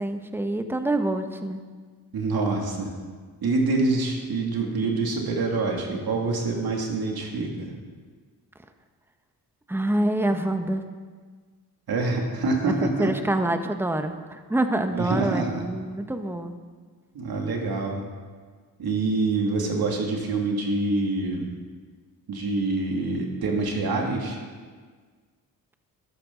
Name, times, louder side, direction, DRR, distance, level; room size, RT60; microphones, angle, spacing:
voice 1, 0.0-1.6 9.7-10.8 12.7-16.5, right 1 dB, 5° right, 7 dB, 1.1 m, -26 dB
voice 2, 2.1-2.9 3.4-7.7 11.9-13.1 14.9-15.6 17.1-18.0 18.8-21.5 22.3-24.4, right 3 dB, 65° right, 1 dB, 2.6 m, -26 dB
13.0 x 11.5 x 3.9 m, 1.5 s
cardioid pair, 65°, 39 cm